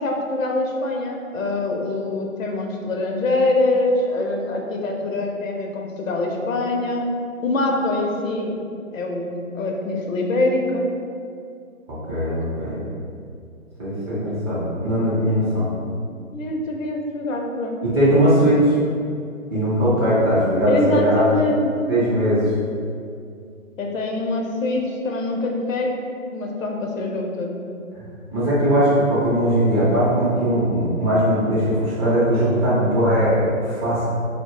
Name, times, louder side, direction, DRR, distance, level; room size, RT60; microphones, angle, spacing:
voice 1, 0.0-7.1 7.4-8.6 8.9-10.9 15.5-15.6 16.3-17.8 20.7-21.8 23.8-26.0 26.3-27.5, left 2 dB, 70° left, 1 dB, 0.5 m, -24 dB
voice 2, 12.1-12.8 13.8-15.7 17.8-18.7 19.5-21.2 21.9-22.5 27.9-28.0 28.3-33.4 33.6-34.0, equal, 20° right, -12 dB, 0.5 m, -19 dB
2.3 x 2.0 x 3.6 m, 2.4 s
figure-of-eight pair, 135°, 42 cm